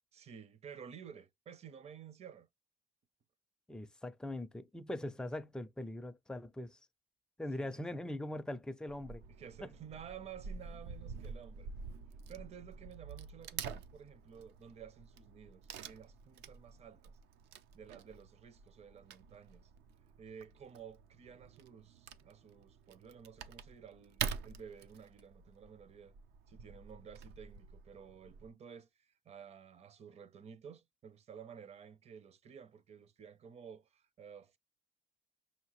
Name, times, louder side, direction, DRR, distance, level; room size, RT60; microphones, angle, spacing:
voice 1, 0.1-2.5 7.6-8.0 9.3-11.7 12.3-17.2 17.7-19.7 20.2-26.1 26.5-34.6, right 7 dB, 40° right, 0.6 m, -53 dB
voice 2, 3.7-6.8 7.4-9.2 9.6-9.7, left 1 dB, 5° left, 0.4 m, -41 dB
Wood / Tearing, 8.9-28.5, right 7 dB, 85° right, 0.6 m, -48 dB
5.3 x 2.8 x 3.0 m
cardioid pair, 110°, 17 cm